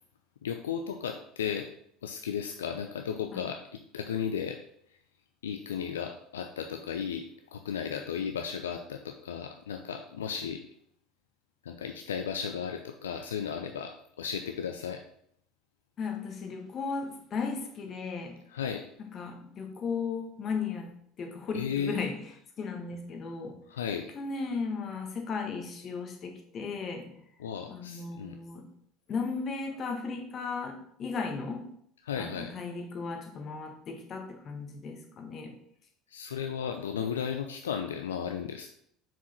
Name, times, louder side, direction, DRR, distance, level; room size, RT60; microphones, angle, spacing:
voice 1, 0.4-1.7 2.0-4.6 4.9-5.0 5.4-10.6 11.6-15.0 18.5-18.8 21.5-22.0 23.7-24.1 27.4-28.4 32.0-32.5 36.1-38.7, left 7 dB, 75° left, 5 dB, 0.4 m, -35 dB
voice 2, 16.0-18.4 19.0-22.2 22.6-23.6 24.1-27.1 27.7-28.7 29.1-31.7 32.2-35.5, left 5 dB, 40° left, 3 dB, 1.4 m, -36 dB
6.0 x 4.7 x 4.3 m, 0.68 s
figure-of-eight pair, 65°, 0 cm